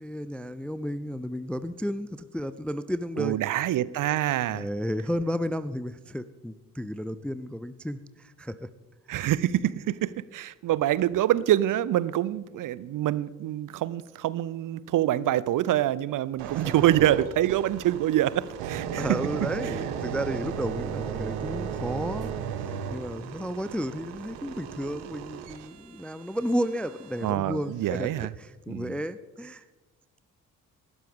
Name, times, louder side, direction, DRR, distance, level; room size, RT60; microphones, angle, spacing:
voice 1, 0.0-3.4 4.5-8.7 16.5-16.7 18.9-29.6, equal, 5° left, 14 dB, 0.4 m, -33 dB
voice 2, 3.2-4.7 9.1-19.2 19.6-19.7 27.2-28.3 28.7-29.0, right 13 dB, 45° right, 19 dB, 0.6 m, -26 dB
sound 1, 16.4-27.3 27.9-28.1, right 8 dB, 70° right, 1.2 m, -35 dB
18.5 x 12.0 x 3.6 m, 1.2 s
figure-of-eight pair, 45°, 47 cm